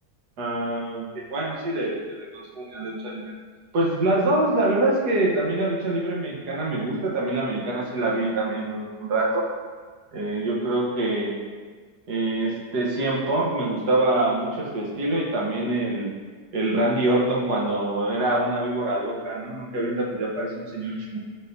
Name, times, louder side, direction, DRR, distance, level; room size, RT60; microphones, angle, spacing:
voice 1, 0.4-3.3 3.7-9.5 10.1-11.3 12.1-16.1 16.5-21.2, right 2 dB, 60° right, -3 dB, 1.7 m, -25 dB
11.5 x 4.3 x 2.7 m, 1.5 s
omnidirectional pair, 2.0 m